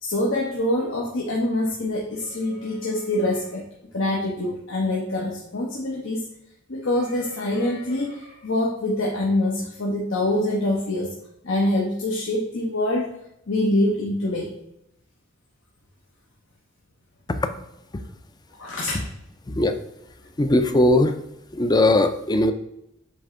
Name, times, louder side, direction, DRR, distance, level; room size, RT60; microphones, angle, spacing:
voice 1, 0.0-3.6 3.9-6.2 6.7-11.2 11.4-13.1 13.5-14.5 18.6-19.0, left 1 dB, 70° left, -2 dB, 1.0 m, -25 dB
voice 2, 20.4-21.2 21.5-22.5, left 1 dB, 20° left, 8 dB, 0.5 m, -19 dB
7.8 x 3.3 x 3.8 m, 0.80 s
head